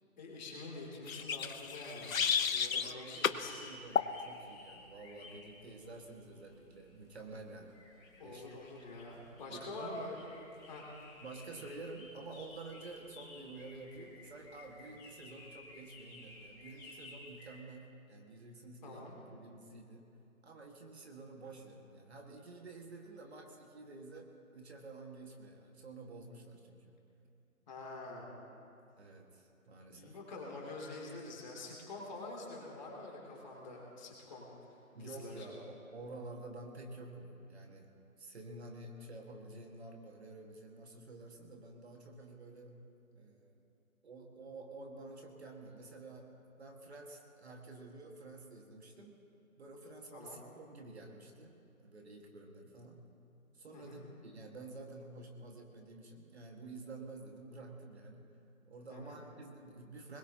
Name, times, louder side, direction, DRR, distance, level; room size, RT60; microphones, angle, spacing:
voice 1, 0.2-3.5 8.2-10.2 10.7-10.8 18.8-19.2 27.7-28.3 29.9-34.5 35.0-35.5 50.1-50.4 53.7-54.0 58.9-59.2, left 2 dB, 30° left, -3 dB, 3.0 m, -46 dB
sound 1, 1.0-17.6, left 2 dB, 5° left, 1.6 m, -56 dB
sound 2, 1.1-2.9 3.2-3.4 3.9-4.1, left 7 dB, 70° left, 0.8 m, -32 dB
voice 2, 2.8-7.7 8.2-8.6 9.5-10.0 11.2-20.1 20.4-26.9 29.0-30.2 34.9-37.9 38.2-42.8 43.1-43.6 44.0-46.3 46.6-49.2 49.6-53.0 53.5-58.3 58.7-60.2, right 2 dB, 50° right, 2 dB, 1.8 m, -50 dB
23.0 x 21.0 x 2.9 m, 2.7 s
figure-of-eight pair, 155°, 43 cm